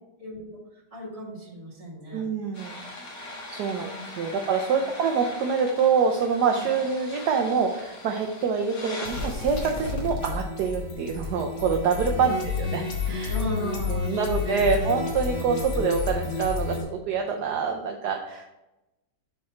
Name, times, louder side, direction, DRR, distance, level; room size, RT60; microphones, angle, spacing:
voice 1, 0.2-2.3 3.6-4.3 4.7-4.9 12.1-12.4 13.3-14.8, equal, 20° right, -6 dB, 2.3 m, -37 dB
voice 2, 2.1-2.8 3.2-13.3 13.8-18.6, right 5 dB, 70° right, 3 dB, 1.1 m, -26 dB
sound 1, 2.5-16.8, left 4 dB, 55° left, 1.9 m, -33 dB
7.5 x 4.3 x 4.3 m, 0.98 s
omnidirectional pair, 2.0 m